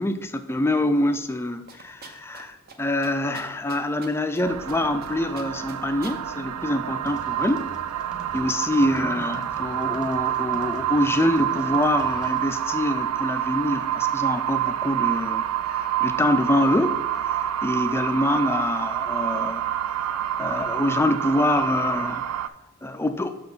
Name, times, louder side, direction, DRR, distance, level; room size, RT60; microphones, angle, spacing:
voice 1, 0.0-7.7 8.3-22.2 22.8-23.3, left 1 dB, 10° left, 8 dB, 0.4 m, -25 dB
sound 1, 1.7-2.4 2.7-2.8 3.0-4.4 4.7-5.1 5.4-6.2, right 4 dB, 45° right, 0.7 m, -43 dB
sound 2, 4.4-22.5, right 11 dB, 85° right, 0.3 m, -27 dB
sound 3, 6.9-12.4, equal, 5° right, 0.8 m, -46 dB
6.5 x 5.9 x 3.9 m, 1.0 s
head